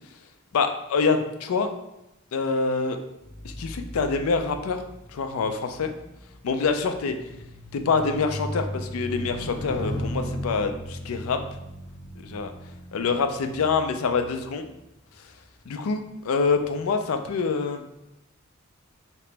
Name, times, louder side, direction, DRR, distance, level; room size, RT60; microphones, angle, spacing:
voice 1, 0.5-1.7 2.3-3.0 3.4-4.8 5.1-5.9 6.4-7.2 7.7-11.4 12.2-12.5 12.9-14.7 15.7-18.0, left 4 dB, 90° left, 7 dB, 0.4 m, -26 dB
sound 1, 3.2-14.9 15.6-15.9, equal, 20° left, 0.3 m, -37 dB
2.9 x 2.9 x 3.3 m, 0.92 s
head